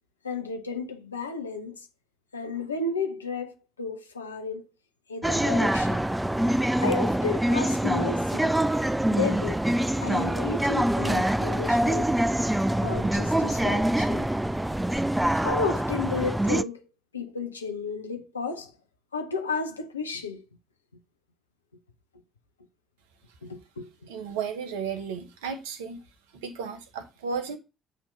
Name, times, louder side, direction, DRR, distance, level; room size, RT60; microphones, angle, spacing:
voice 1, 0.2-1.8 2.3-4.6 5.1-6.0 6.8-8.5 9.1-9.6 10.0-12.1 12.8-14.3 15.3-16.8 17.1-18.7 19.1-20.4 23.4-23.9, left 4 dB, 85° left, 0.6 m, -32 dB
sound 1, 5.2-16.6, right 1 dB, 10° right, 0.3 m, -25 dB
voice 2, 24.1-26.0 26.3-27.6, right 6 dB, 75° right, 0.8 m, -34 dB
8.2 x 2.9 x 5.2 m
figure-of-eight pair, 45°, 0 cm